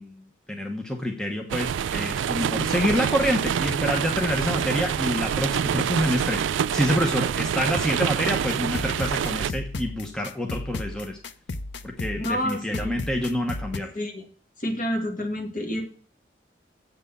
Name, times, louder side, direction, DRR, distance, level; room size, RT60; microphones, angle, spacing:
voice 1, 0.0-11.2 11.8-13.9, equal, 5° left, 2 dB, 0.9 m, -27 dB
sound 1, 1.5-9.5, right 8 dB, 85° right, 0.3 m, -26 dB
sound 2, 8.3-13.8, left 2 dB, 75° left, 0.7 m, -35 dB
voice 2, 12.1-13.0 13.9-14.3 14.6-15.8, equal, 45° left, 2 dB, 2.1 m, -29 dB
8.2 x 6.2 x 6.9 m, 0.43 s
head